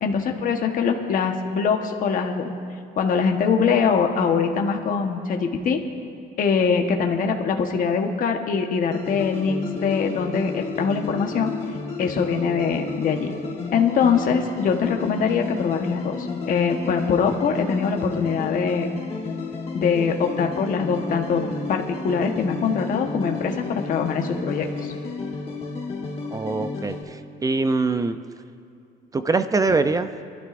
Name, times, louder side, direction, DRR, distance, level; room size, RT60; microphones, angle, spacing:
voice 1, 0.0-2.5 3.0-5.8 6.4-11.5 12.0-13.3 13.7-18.9 19.7-24.9, left 6 dB, 55° left, 3 dB, 1.2 m, -23 dB
sound 1, 8.9-27.0, left 4 dB, 35° left, 1.9 m, -32 dB
voice 2, 26.3-28.2 29.1-30.1, right 3 dB, 20° right, 10 dB, 0.4 m, -23 dB
25.0 x 12.5 x 2.6 m, 2.3 s
cardioid pair, 110°, 17 cm